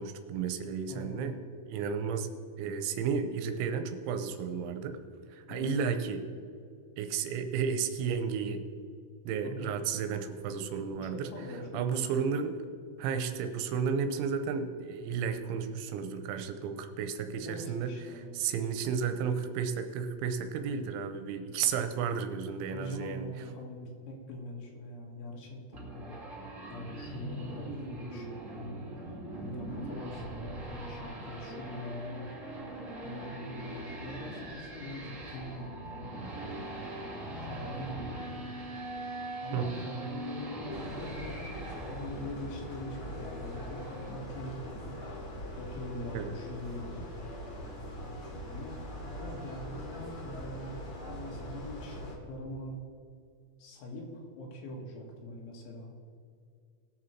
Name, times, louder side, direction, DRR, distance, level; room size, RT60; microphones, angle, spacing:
voice 1, 0.0-1.4 1.7-2.3 2.6-5.0 5.3-6.3 7.0-8.6 9.3-11.3 11.7-12.6 13.0-17.9 18.3-23.3 39.5-39.7 46.1-46.3, right 6 dB, 80° right, 8 dB, 3.1 m, -33 dB
voice 2, 0.9-1.3 5.5-5.7 9.4-9.8 10.9-12.1 17.5-18.4 22.7-26.2 26.7-32.4 33.0-36.7 37.3-38.5 39.4-44.9 45.6-47.1 48.5-52.8 53.6-55.9, left 1 dB, 80° left, 0 dB, 4.2 m, -43 dB
sound 1, 25.7-44.1, right 2 dB, 40° right, 1.1 m, -42 dB
sound 2, 40.7-52.2, equal, 40° left, 2.2 m, -42 dB
sound 3, 42.5-51.2, equal, 20° right, 2.0 m, -56 dB
20.0 x 6.8 x 4.4 m, 2.3 s
omnidirectional pair, 5.5 m